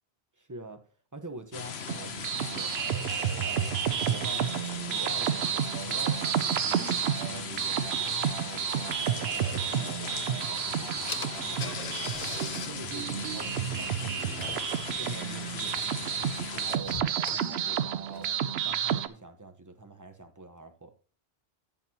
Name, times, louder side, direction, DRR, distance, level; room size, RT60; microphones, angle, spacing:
voice 1, 0.4-2.7 3.3-4.5 4.8-8.2 8.4-12.0 12.5-14.5 14.9-16.9 17.3-18.4 18.6-20.9, right 2 dB, 20° right, 1.1 m, -47 dB
sound 1, 1.5-16.8, left 7 dB, 90° left, 1.1 m, -39 dB
sound 2, 1.9-19.1, right 9 dB, 80° right, 0.9 m, -31 dB
Car / Engine, 10.6-10.7 11.1-18.5, left 5 dB, 45° left, 0.8 m, -43 dB
11.0 x 8.2 x 2.9 m
omnidirectional pair, 1.0 m